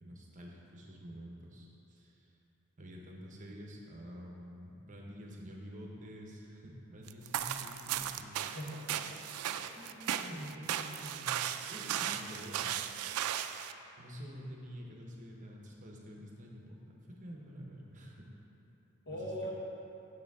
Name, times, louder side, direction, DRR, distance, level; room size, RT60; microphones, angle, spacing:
voice 1, 0.0-2.3 2.8-8.4 9.7-11.4 11.7-12.7 14.0-18.3 19.1-19.5, equal, 35° right, -1 dB, 0.9 m, -48 dB
sound 1, 7.1-13.7, right 10 dB, 90° right, 0.3 m, -36 dB
voice 2, 8.4-9.2 9.5-9.6 10.2-10.5 19.1-19.5, equal, 55° left, -3 dB, 1.2 m, -42 dB
8.8 x 6.7 x 3.6 m, 3.0 s
head